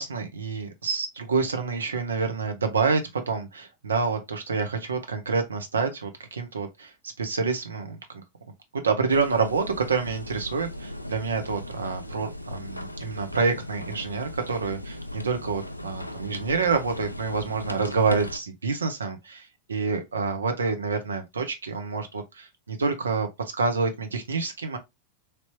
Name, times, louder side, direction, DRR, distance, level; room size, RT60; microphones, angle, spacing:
voice 1, 0.0-6.9 7.2-8.2 8.7-23.3 23.6-24.8, right 4 dB, 70° right, 0.7 m, -27 dB
sound 1, 9.1-18.4, left 1 dB, 85° left, 0.3 m, -38 dB
3.3 x 2.8 x 2.9 m
figure-of-eight pair, 90°, 0 cm